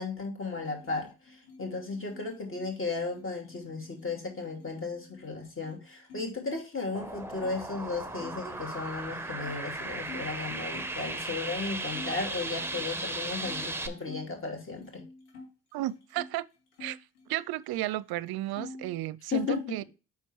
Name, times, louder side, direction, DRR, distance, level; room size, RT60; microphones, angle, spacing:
voice 1, 0.0-15.0 19.3-19.8, left 4 dB, 30° left, 2.7 m, -35 dB
sound 1, 0.5-6.2 6.5-7.6 8.1-11.0 11.5-11.6 11.9-14.3 14.7-16.3 16.7-17.8 18.1-19.0, left 3 dB, 80° left, 2.2 m, -49 dB
sound 2, 6.9-13.9, right 2 dB, 5° right, 0.9 m, -36 dB
voice 2, 15.7-16.5 16.8-17.0 17.3-19.8, right 15 dB, 60° right, 0.5 m, -33 dB
5.8 x 4.5 x 4.6 m
supercardioid pair, 75°, 42 cm